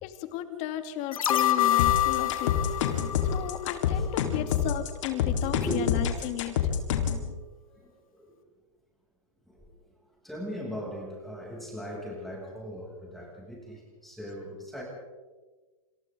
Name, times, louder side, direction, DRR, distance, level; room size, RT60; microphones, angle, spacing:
voice 1, 0.0-2.5 3.2-6.6, left 12 dB, 40° left, 8 dB, 2.5 m, -34 dB
sound 1, 1.1-4.3 4.6-4.7, left 12 dB, 80° left, 1.6 m, -27 dB
sound 2, 1.8-7.2, left 9 dB, 65° left, 4.2 m, -27 dB
voice 2, 5.4-5.9 7.7-8.3 9.5-9.7 10.2-14.8, equal, ahead, -3 dB, 7.9 m, -38 dB
29.0 x 27.5 x 4.0 m, 1.3 s
hypercardioid pair, 120°, 17 cm